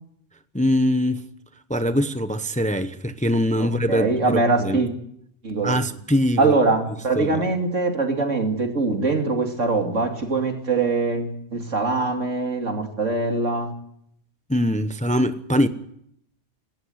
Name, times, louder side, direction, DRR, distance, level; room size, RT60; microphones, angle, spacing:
voice 1, 0.5-1.2 1.7-4.8 5.6-6.6 7.1-7.5 14.5-15.7, equal, 5° left, 0.7 m, -22 dB
voice 2, 3.6-4.9 5.4-5.8 6.4-13.7, right 3 dB, 85° right, 3.1 m, -23 dB
18.5 x 17.5 x 8.0 m
omnidirectional pair, 1.3 m